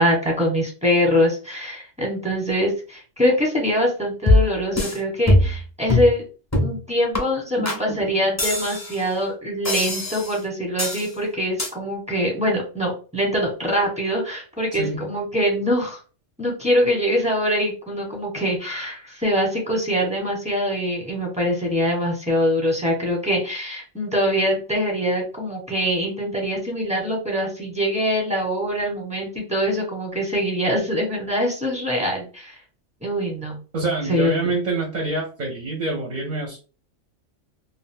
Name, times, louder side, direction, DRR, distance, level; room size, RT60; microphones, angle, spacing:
voice 1, 0.0-6.2 6.6-16.0 16.4-32.6 33.0-33.6 34.1-34.3, equal, 5° right, -2 dB, 0.8 m, -23 dB
sound 1, 4.3-5.0 5.3-5.6 5.9-6.1 6.5-6.8 7.1-7.2 7.7-7.8 8.4-9.0 9.7-10.4 10.8-11.1 11.6-11.7, left 2 dB, 20° left, 0.4 m, -21 dB
voice 2, 7.6-8.1 14.7-15.1 33.7-36.6, right 3 dB, 45° right, 1 dB, 0.7 m, -27 dB
2.5 x 2.2 x 3.5 m, 0.36 s
omnidirectional pair, 1.3 m